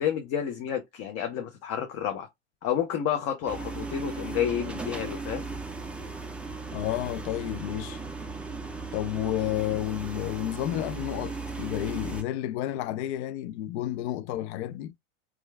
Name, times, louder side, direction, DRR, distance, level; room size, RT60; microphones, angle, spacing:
voice 1, 0.0-2.3 2.6-5.4, left 9 dB, 45° left, 0.8 m, -30 dB
sound 1, 3.5-12.2, right 3 dB, 5° right, 0.3 m, -37 dB
voice 2, 6.7-8.0 8.9-14.9, left 13 dB, 60° left, 0.5 m, -31 dB
3.0 x 2.4 x 3.2 m
hypercardioid pair, 100°, 37 cm